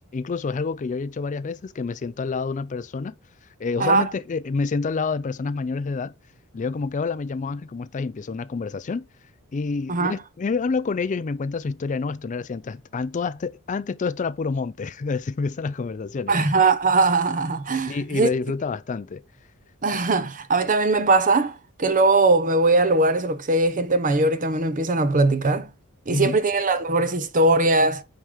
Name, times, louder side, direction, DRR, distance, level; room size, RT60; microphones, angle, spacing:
voice 1, 0.1-3.1 3.6-6.1 6.5-9.1 9.5-16.3 17.9-19.2 26.1-26.4, left 4 dB, 35° left, 0.4 m, -28 dB
voice 2, 16.3-18.3 19.8-25.7 26.1-28.0, right 3 dB, 35° right, 0.8 m, -20 dB
9.0 x 4.8 x 4.9 m
head